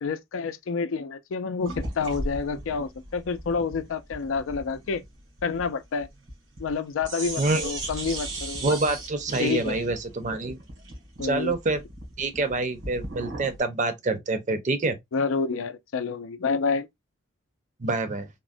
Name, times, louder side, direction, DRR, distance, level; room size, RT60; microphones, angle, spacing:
voice 1, 0.0-5.0 5.4-6.1 6.6-8.8 9.4-9.9 11.2-11.5 15.1-16.9, left 5 dB, 80° left, 0.4 m, -28 dB
sound 1, 1.6-6.8 7.0-13.6, right 1 dB, 80° right, 1.7 m, -37 dB
voice 2, 7.4-7.7 8.6-10.6 11.2-11.8 12.2-15.0 17.8-18.3, right 3 dB, 40° right, 0.6 m, -26 dB
3.6 x 2.1 x 2.5 m
head